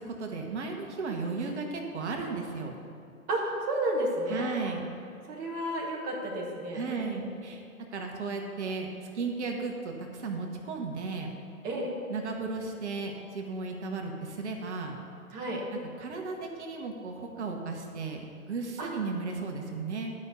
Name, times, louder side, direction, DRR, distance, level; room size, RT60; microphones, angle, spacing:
voice 1, 0.0-2.7 4.3-4.9 6.7-7.6 7.9-8.9 9.1-11.3 12.1-15.0 16.0-20.1, right 4 dB, 50° right, 2 dB, 1.2 m, -35 dB
voice 2, 3.3-4.7 5.3-7.3 11.6-11.9 15.3-15.6 18.8-18.9, right 1 dB, 20° right, -3 dB, 1.1 m, -32 dB
11.0 x 5.4 x 6.5 m, 2.5 s
figure-of-eight pair, 125°, 45 cm